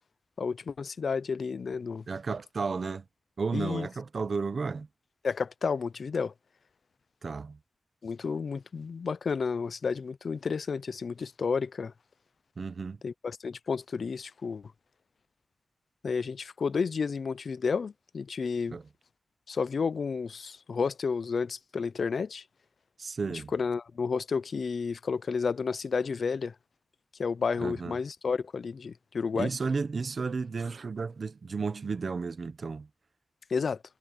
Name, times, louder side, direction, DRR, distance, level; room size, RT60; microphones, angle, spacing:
voice 1, 0.4-2.0 3.5-3.9 5.2-6.3 8.0-11.9 13.0-14.7 16.0-18.8 19.5-22.4 23.5-26.5 27.2-29.5 33.5-33.8, left 5 dB, 60° left, 0.4 m, -31 dB
voice 2, 2.1-3.0 3.4-4.9 7.2-7.6 12.6-13.0 18.7-18.8 23.0-23.5 27.6-28.0 29.3-32.9, right 4 dB, 50° right, 1.0 m, -33 dB
wide cardioid pair, 160°, 0 cm